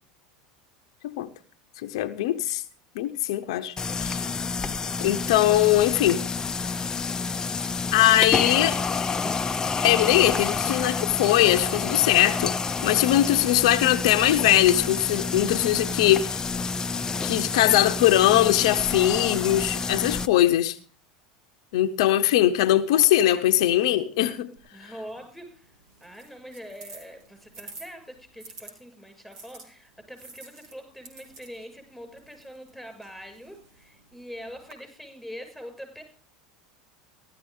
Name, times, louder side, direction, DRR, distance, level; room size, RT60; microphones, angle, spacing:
voice 1, 1.8-2.6 3.0-4.2 5.0-6.2 7.9-8.8 9.8-12.5 12.8-16.4 17.2-20.8 21.7-24.5, left 13 dB, 75° left, 0.8 m, -21 dB
sound 1, 3.8-20.3, left 4 dB, 20° left, 0.7 m, -29 dB
voice 2, 8.9-9.4 24.7-25.7 26.0-36.0, equal, ahead, 6.2 m, -44 dB
sound 2, 24.6-28.7 29.3-34.7, right 3 dB, 75° right, 3.2 m, -50 dB
16.0 x 12.5 x 3.7 m
hypercardioid pair, 90°, 3 cm